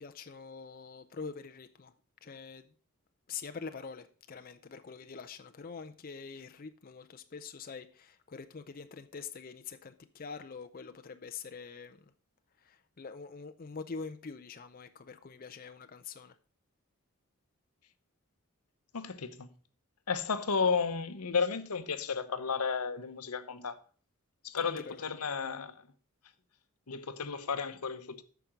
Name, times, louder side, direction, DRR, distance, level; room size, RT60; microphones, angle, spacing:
voice 1, 0.0-1.9 2.2-2.7 3.3-12.0 12.6-16.3 24.6-25.1, left 5 dB, 40° left, 0.5 m, -45 dB
voice 2, 18.9-19.5 20.1-23.8 24.4-25.8 26.9-28.2, left 5 dB, 85° left, 0.9 m, -33 dB
8.8 x 5.9 x 5.9 m
head